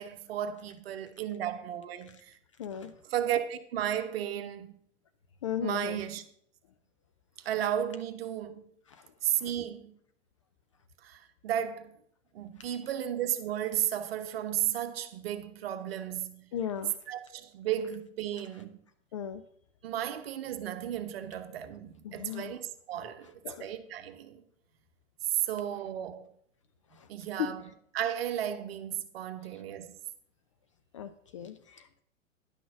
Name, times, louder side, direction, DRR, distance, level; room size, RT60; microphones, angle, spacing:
voice 1, 0.0-2.3 3.1-4.8 5.6-6.2 7.4-8.7 9.2-9.9 11.0-12.0 12.3-16.5 17.1-18.8 19.8-24.4 25.5-26.3 27.1-27.6 27.9-30.0, right 10 dB, 50° right, 1.1 m, -34 dB
voice 2, 2.6-2.9 5.4-6.0 8.9-9.1 9.4-9.5 12.6-12.7 16.5-17.0 19.1-19.4 22.0-22.6 23.4-23.7 26.9-27.1 27.4-27.5 29.5-29.6 30.9-32.0, left 9 dB, 25° left, 0.3 m, -37 dB
11.0 x 6.1 x 5.9 m
figure-of-eight pair, 105°, 39 cm